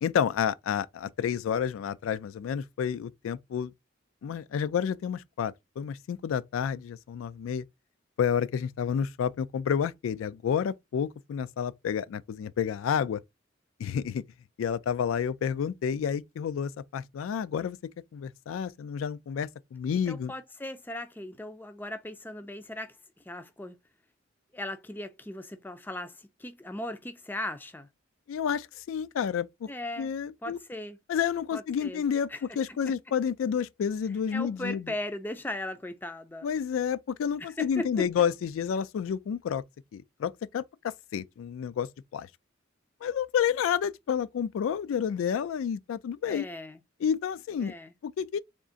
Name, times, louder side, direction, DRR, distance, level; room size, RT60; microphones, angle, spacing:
voice 1, 0.0-3.7 4.2-7.6 8.2-13.2 13.8-14.2 14.6-17.8 18.1-20.3 28.3-29.7 30.0-30.6 31.1-32.3 32.6-34.8 36.4-39.6 39.9-42.3 43.0-46.5 47.0-47.7 48.0-48.4, left 7 dB, 85° left, 0.3 m, -30 dB
voice 2, 19.9-23.0 23.3-23.8 24.5-27.9 29.7-30.1 30.4-31.0 31.5-32.0 32.3-32.9 34.3-36.5 37.4-38.1 46.3-46.8 47.6-47.9, left 1 dB, 10° left, 0.3 m, -38 dB
3.6 x 2.4 x 3.8 m
head